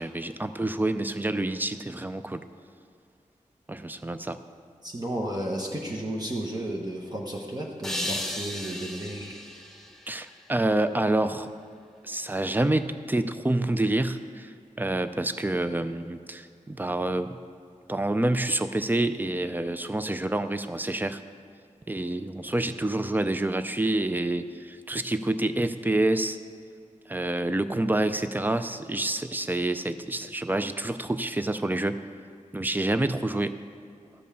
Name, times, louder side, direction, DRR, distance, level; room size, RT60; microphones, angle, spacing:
voice 1, 0.0-2.4 3.7-4.4 10.1-11.5 12.0-17.4 17.9-21.2 21.9-26.4 27.1-32.0 32.5-33.6, right 2 dB, 15° right, 10 dB, 0.4 m, -27 dB
voice 2, 4.8-9.4, right 1 dB, 30° right, -2 dB, 1.1 m, -33 dB
sound 1, 7.8-11.0, left 1 dB, 5° left, 1.0 m, -36 dB
13.0 x 5.4 x 6.8 m, 2.2 s
wide cardioid pair, 95°, 14 cm